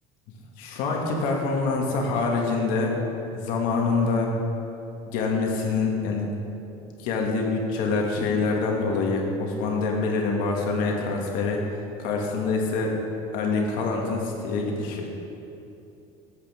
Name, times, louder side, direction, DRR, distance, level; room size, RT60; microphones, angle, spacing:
voice 1, 0.6-2.9 3.3-4.3 5.1-6.4 7.0-11.6 12.0-12.9 13.3-15.1, left 4 dB, 70° left, 0 dB, 2.0 m, -25 dB
14.5 x 8.2 x 3.7 m, 2.9 s
cardioid pair, 130°, 15 cm